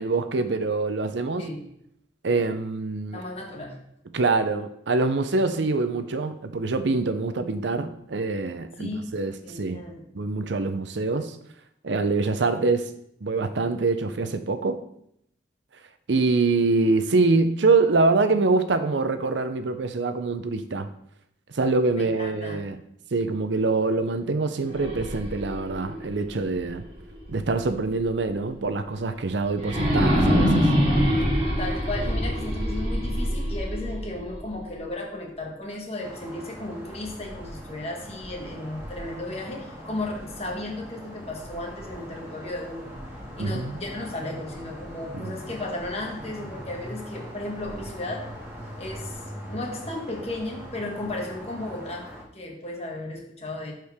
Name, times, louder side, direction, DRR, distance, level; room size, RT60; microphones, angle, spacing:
voice 1, 0.0-1.5 2.2-3.2 4.1-9.8 10.1-11.4 11.8-12.9 13.2-14.8 16.1-20.9 21.5-22.8 23.1-26.8 27.3-30.6 43.4-43.8 45.1-45.2, right 3 dB, 75° right, 10 dB, 0.6 m, -24 dB
voice 2, 3.1-3.8 8.8-9.2 9.4-10.1 21.9-22.6 31.6-43.0 43.4-48.3 48.8-53.7, left 2 dB, 35° left, 0 dB, 1.4 m, -35 dB
sound 1, 24.6-27.6 28.1-28.2 29.5-34.6, equal, 35° right, 2.4 m, -25 dB
sound 2, 36.0-52.2, equal, 15° right, 1.6 m, -41 dB
11.0 x 4.5 x 3.5 m, 0.73 s
head